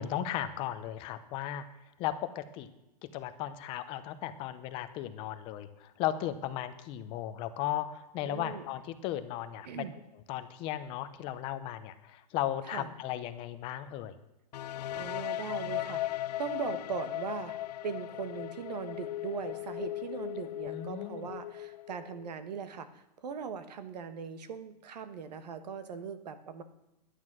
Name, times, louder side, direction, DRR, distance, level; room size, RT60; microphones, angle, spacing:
voice 1, 0.0-1.6 2.0-2.7 3.1-9.8 10.3-14.1 20.7-21.3, left 12 dB, 25° left, 11 dB, 0.6 m, -36 dB
voice 2, 8.2-8.7 9.6-9.9 12.6-12.9 14.9-26.6, right 6 dB, 80° right, 11 dB, 1.4 m, -40 dB
sound 1, 14.5-22.3, left 14 dB, 75° left, 0.5 m, -38 dB
11.5 x 9.8 x 6.1 m, 0.89 s
supercardioid pair, 160°, 21 cm